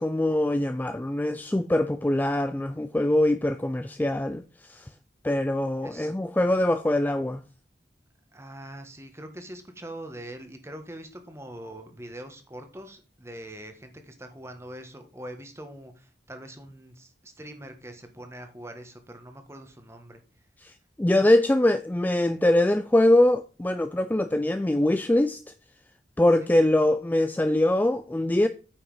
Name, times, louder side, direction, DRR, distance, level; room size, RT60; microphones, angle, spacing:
voice 1, 0.0-4.9 5.2-7.4 20.6-25.4 26.2-28.5, left 1 dB, 10° left, 0.3 m, -23 dB
voice 2, 5.8-6.1 8.3-20.2 26.4-26.5, right 1 dB, 15° right, 1.4 m, -43 dB
9.0 x 5.6 x 5.5 m
head